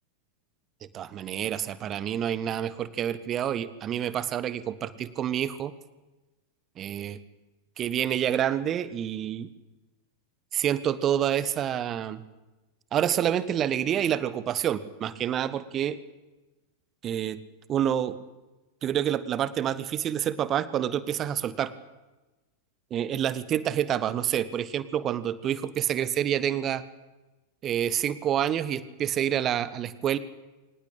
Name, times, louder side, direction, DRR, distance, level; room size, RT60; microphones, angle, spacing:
voice 1, 0.9-5.7 6.8-7.2 7.8-9.5 10.5-12.2 12.9-16.0 17.0-17.4 17.7-18.1 18.8-21.7 22.9-26.8 27.6-30.2, right 10 dB, 30° right, 16 dB, 1.4 m, -28 dB
24.5 x 19.0 x 8.7 m, 1.1 s
figure-of-eight pair, 90°, 0 cm